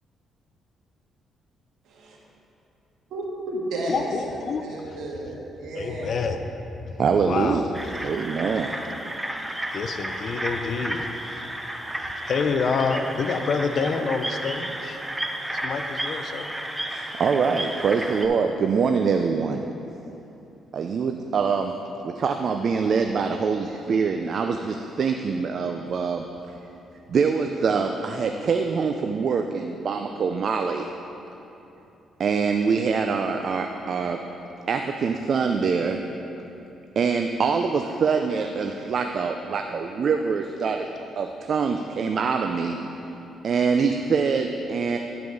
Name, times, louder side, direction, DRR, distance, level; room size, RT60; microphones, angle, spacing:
voice 1, 3.1-6.1, right 1 dB, 75° right, -3 dB, 1.7 m, -32 dB
voice 2, 3.9-4.6 5.7-6.4 6.9-7.0 7.3-7.7 9.7-11.4 12.3-15.0 15.5-16.5, left 5 dB, 55° left, 7 dB, 0.6 m, -27 dB
voice 3, 7.0-7.6 8.0-8.8 16.9-19.6 20.7-21.8 22.0-26.2 27.1-30.9 32.2-34.2 34.7-36.0 37.0-40.9 41.2-42.8 43.4-45.0, right 5 dB, 55° right, 5 dB, 0.4 m, -24 dB
sound 1, 7.7-18.3, right 1 dB, 10° right, 0.6 m, -32 dB
10.5 x 4.8 x 5.3 m, 3.0 s
cardioid pair, 90°, 0 cm